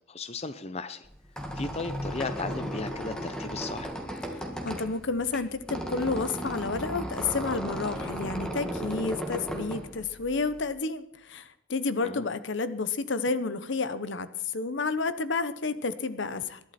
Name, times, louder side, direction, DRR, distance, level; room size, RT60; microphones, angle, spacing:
voice 1, 0.1-1.1 1.5-3.9 12.0-12.2, left 3 dB, 30° left, 11 dB, 0.7 m, -35 dB
Squeak, 1.0-10.7, equal, 5° left, 1.6 m, -35 dB
voice 2, 4.6-16.6, left 4 dB, 65° left, 13 dB, 0.8 m, -30 dB
21.5 x 11.5 x 4.3 m, 0.78 s
head